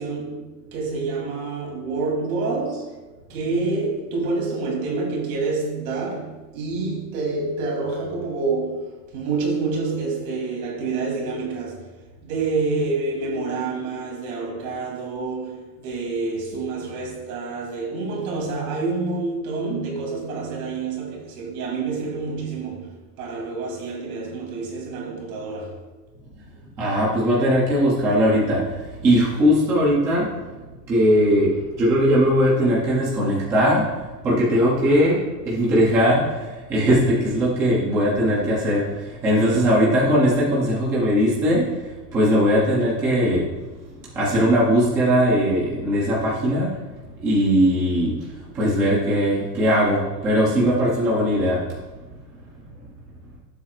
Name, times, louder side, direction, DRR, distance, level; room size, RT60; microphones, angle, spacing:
voice 1, 0.0-3.0 3.3-11.9 12.2-25.8, right 3 dB, 55° right, 3.1 m, -27 dB
voice 2, 26.8-30.4 30.9-33.9 34.2-43.5 44.1-46.8 47.2-51.6, equal, 5° right, 0.4 m, -20 dB
16.0 x 7.3 x 2.4 m
supercardioid pair, 170°, 50 cm